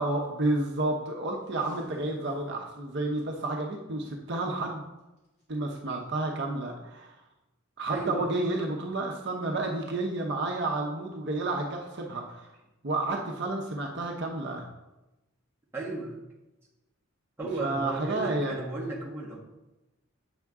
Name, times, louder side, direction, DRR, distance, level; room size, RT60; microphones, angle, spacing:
voice 1, 0.0-4.8 5.5-7.2 7.8-12.5 12.8-14.7 17.6-18.6, right 2 dB, 50° right, 0 dB, 0.8 m, -31 dB
Packing tape duct tape, 1.4-2.5 2.9-3.2 3.8-4.2 5.2-5.4 6.0-6.1, equal, 30° left, 2.8 m, -50 dB
voice 2, 7.9-8.3 15.7-16.2 17.4-19.4, right 2 dB, 10° right, -5 dB, 1.2 m, -34 dB
7.9 x 5.9 x 3.6 m, 1.0 s
head